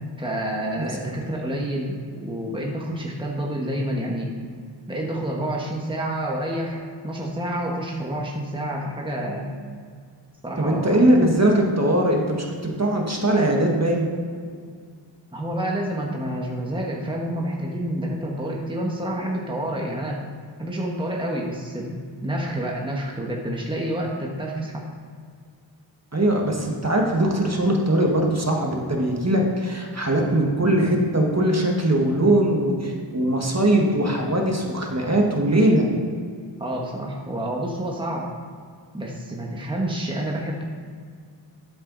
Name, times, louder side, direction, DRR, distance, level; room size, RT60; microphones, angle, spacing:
voice 1, 0.2-4.3 4.9-9.5 10.4-11.0 15.3-20.2 20.6-24.8 36.6-38.3 38.9-40.6, right 1 dB, 10° right, -2 dB, 1.4 m, -28 dB
voice 2, 0.8-1.1 10.6-14.1 26.1-35.8, right 1 dB, 35° right, 0 dB, 1.6 m, -21 dB
12.0 x 7.8 x 4.0 m, 2.1 s
wide cardioid pair, 75°, 45 cm